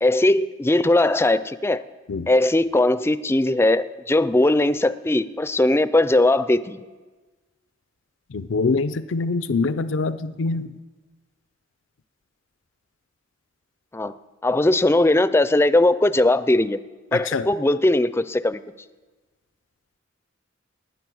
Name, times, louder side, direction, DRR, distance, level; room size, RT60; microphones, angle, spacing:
voice 1, 0.0-1.8 2.3-6.9 13.9-14.1 14.4-16.8 17.1-18.6, left 1 dB, 15° left, 0.4 m, -19 dB
voice 2, 8.3-10.7 17.1-17.5, left 4 dB, 80° left, 0.5 m, -24 dB
17.5 x 9.8 x 6.2 m
head